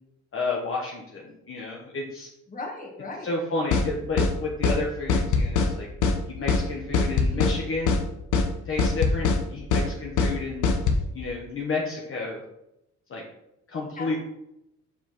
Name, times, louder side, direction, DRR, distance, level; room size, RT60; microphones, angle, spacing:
voice 1, 0.3-2.3 3.2-5.9 6.2-8.0 8.6-10.6 11.1-12.4 13.1-13.3 13.7-14.2, left 3 dB, 45° left, -2 dB, 1.1 m, -31 dB
voice 2, 2.5-3.3 14.0-14.2, left 3 dB, 25° left, 1 dB, 1.7 m, -36 dB
sound 1, 3.7-3.9 4.2-4.3 4.6-4.8 5.1-5.7 6.0-6.2 6.5-6.6 6.9-7.6 7.9-8.0 8.3-8.5 8.8-9.4 9.7-9.9 10.2-10.3 10.6-11.0, left 4 dB, 80° left, 1.0 m, -22 dB
6.6 x 5.3 x 3.1 m, 0.85 s
cardioid pair, 90°, 30 cm